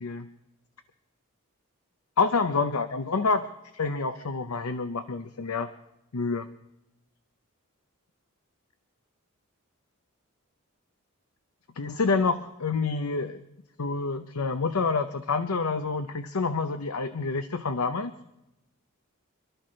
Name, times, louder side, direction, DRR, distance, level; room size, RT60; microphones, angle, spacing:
voice 1, 2.2-3.5 3.7-5.7 6.1-6.5 11.8-13.4 13.8-18.1, left 4 dB, 90° left, 9 dB, 0.8 m, -27 dB
26.5 x 13.0 x 3.2 m, 0.88 s
head